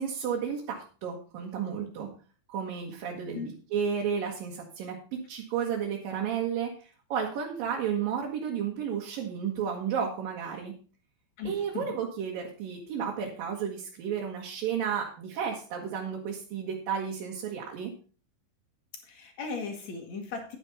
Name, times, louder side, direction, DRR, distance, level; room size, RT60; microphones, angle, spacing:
voice 1, 0.0-2.1 2.5-10.7 11.4-17.9, right 7 dB, 70° right, -1 dB, 3.1 m, -32 dB
voice 2, 11.4-11.9 19.0-20.6, left 4 dB, 50° left, 4 dB, 2.9 m, -37 dB
11.0 x 9.4 x 4.1 m, 0.38 s
omnidirectional pair, 4.4 m